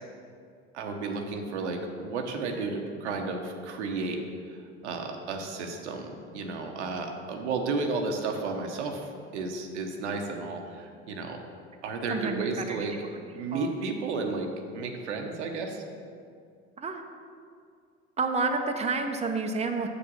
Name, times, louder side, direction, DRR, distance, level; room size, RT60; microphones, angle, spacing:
voice 1, 0.7-4.2 4.5-4.6 4.8-11.4 11.8-12.9 13.3-14.5 14.7-15.8, right 3 dB, 80° right, 3 dB, 1.1 m, -33 dB
voice 2, 12.1-12.8 13.5-13.7 16.8-17.0 18.2-19.9, right 4 dB, 20° right, 4 dB, 0.8 m, -29 dB
7.2 x 6.9 x 5.5 m, 2.3 s
hypercardioid pair, 70°, 34 cm